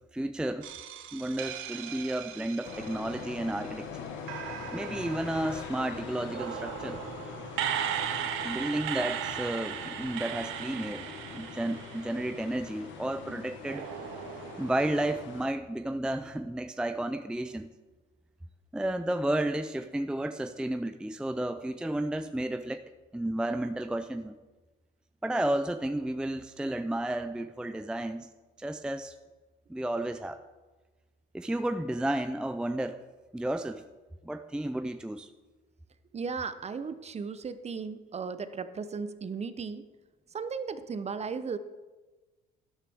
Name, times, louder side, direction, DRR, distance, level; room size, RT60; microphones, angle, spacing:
voice 1, 0.1-0.7 1.1-4.0 4.7-7.0 8.4-13.9 14.6-17.7 18.7-22.8 23.1-24.4 25.2-28.3 28.6-29.2 29.7-30.4 31.3-33.0 33.3-33.9 34.2-35.3, right 1 dB, 5° right, 10 dB, 0.5 m, -32 dB
sound 1, 0.6-3.8 4.3-12.7 13.7-15.1, right 9 dB, 70° right, 1.1 m, -38 dB
sound 2, 2.6-15.5, left 6 dB, 65° left, 1.6 m, -43 dB
voice 2, 36.1-39.9 40.3-41.6, right 5 dB, 30° right, 12 dB, 0.9 m, -36 dB
12.0 x 11.0 x 3.6 m, 1.2 s
hypercardioid pair, 75°, 21 cm